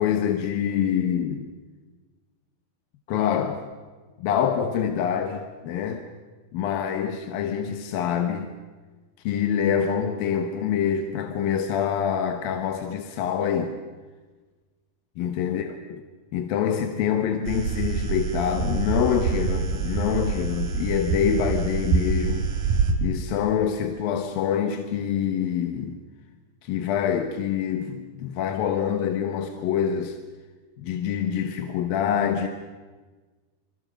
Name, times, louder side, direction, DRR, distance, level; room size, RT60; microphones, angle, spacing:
voice 1, 0.0-1.5 3.1-3.7 4.2-6.0 6.5-8.5 9.2-13.7 15.2-16.0 16.3-22.5 23.0-26.0 26.6-30.2 30.8-32.5, left 8 dB, 70° left, 6 dB, 2.8 m, -26 dB
sound 1, 17.5-22.9, right 5 dB, 75° right, 4.5 m, -26 dB
26.0 x 26.0 x 6.5 m, 1.3 s
omnidirectional pair, 4.7 m